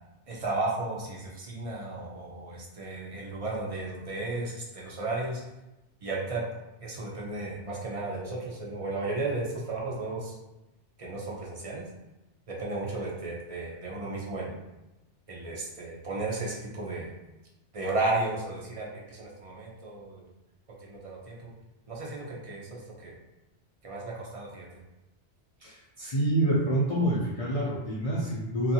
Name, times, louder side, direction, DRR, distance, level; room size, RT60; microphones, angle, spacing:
voice 1, 0.3-5.4 6.0-6.4 6.8-10.3 11.0-11.8 12.5-14.5 15.3-17.1 17.7-20.2 20.9-21.5 21.9-23.1 23.8-24.7, right 2 dB, 45° right, -3 dB, 0.5 m, -34 dB
voice 2, 25.6-28.7, right 1 dB, 45° left, -7 dB, 0.5 m, -27 dB
2.6 x 2.4 x 2.7 m, 0.97 s
omnidirectional pair, 1.2 m